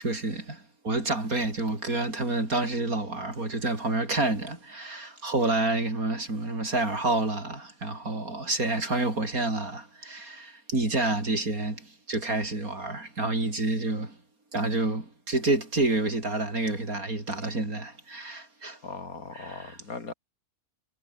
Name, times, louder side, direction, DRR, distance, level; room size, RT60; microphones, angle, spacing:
voice 1, 0.0-14.1 14.5-18.8 19.3-19.8, right 2 dB, 80° right, 5.9 m, -29 dB
voice 2, 18.8-20.1, left 4 dB, 80° left, 3.5 m, -39 dB
omnidirectional pair, 1.5 m